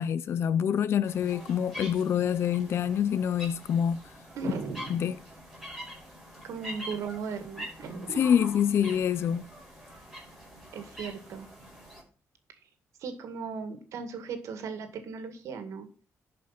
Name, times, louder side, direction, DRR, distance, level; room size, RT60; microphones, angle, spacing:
voice 1, 0.0-4.0 4.9-5.2 8.2-9.5, left 8 dB, 55° left, 0.4 m, -26 dB
sound 1, 1.1-12.0, equal, ahead, 5.1 m, -45 dB
voice 2, 4.3-4.9 6.4-8.3 10.7-11.5 13.0-15.9, right 5 dB, 75° right, 1.9 m, -37 dB
11.0 x 5.1 x 5.8 m
cardioid pair, 135°, 5 cm